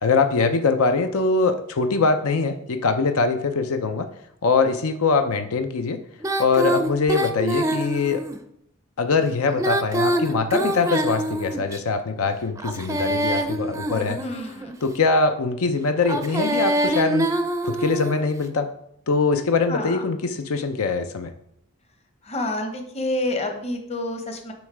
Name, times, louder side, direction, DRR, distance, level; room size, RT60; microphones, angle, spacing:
voice 1, 0.0-4.1 4.4-6.0 6.4-8.2 9.0-14.2 14.8-17.3 17.6-18.7 19.1-21.3, left 4 dB, 80° left, 8 dB, 0.6 m, -22 dB
Female singing, 6.2-8.4 9.5-11.8 12.6-14.7 16.0-18.2, right 1 dB, 15° right, 0.4 m, -25 dB
voice 2, 14.2-14.7 19.7-20.0 22.2-24.5, left 1 dB, 30° left, 4 dB, 0.8 m, -28 dB
7.9 x 3.1 x 4.9 m, 0.71 s
head